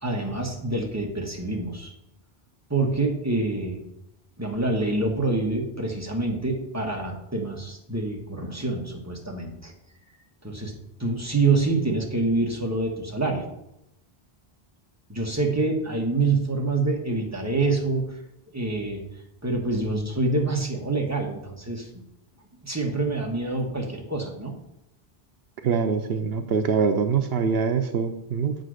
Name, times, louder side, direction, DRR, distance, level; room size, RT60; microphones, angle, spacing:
voice 1, 0.0-1.9 2.7-3.8 4.4-9.7 10.4-10.7 11.0-13.4 15.1-18.0 18.5-19.0 19.4-21.9 22.6-24.5, right 3 dB, 15° right, 0 dB, 1.3 m, -26 dB
voice 2, 25.6-28.6, right 6 dB, 75° right, 7 dB, 0.8 m, -24 dB
7.4 x 3.9 x 6.4 m, 0.81 s
omnidirectional pair, 1.0 m